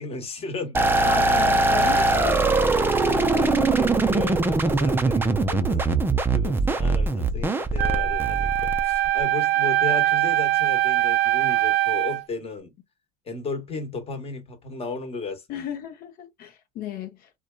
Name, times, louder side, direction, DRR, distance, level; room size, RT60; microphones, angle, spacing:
voice 1, 0.0-1.1 1.7-2.4 3.0-6.0 6.3-12.7 13.3-15.6, left 3 dB, 30° left, 1.0 m, -35 dB
sound 1, 0.7-9.2, right 3 dB, 10° right, 0.4 m, -22 dB
voice 2, 1.1-2.7 3.3-3.4 15.5-17.3, left 8 dB, 50° left, 0.7 m, -33 dB
Wind instrument woodwind instrument, 7.8-12.2, right 15 dB, 55° right, 0.6 m, -22 dB
2.6 x 2.2 x 2.2 m
hypercardioid pair, 95°, 20 cm